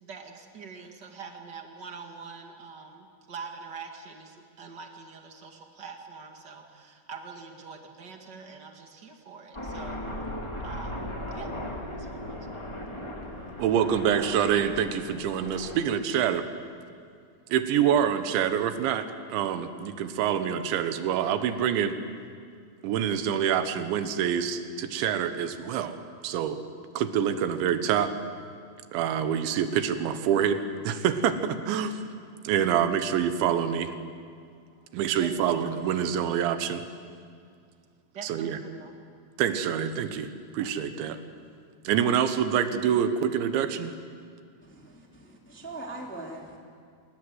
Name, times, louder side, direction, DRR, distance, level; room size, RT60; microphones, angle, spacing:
voice 1, 0.0-10.0 10.6-11.5 11.9-12.4 35.2-35.6 38.1-39.0, right 5 dB, 50° right, 3 dB, 1.3 m, -44 dB
Aircraft, 9.5-15.8, left 1 dB, 30° left, 0.5 m, -37 dB
voice 2, 13.6-16.5 17.5-22.0 22.8-26.0 26.2-26.6 27.0-28.1 28.9-32.0 32.5-34.0 34.9-36.8 38.2-38.6 39.4-41.2 41.9-44.0, right 8 dB, 85° right, 9 dB, 3.5 m, -26 dB
voice 3, 44.6-46.6, right 2 dB, 5° left, -1 dB, 1.9 m, -41 dB
26.0 x 21.0 x 8.0 m, 2.2 s
omnidirectional pair, 5.2 m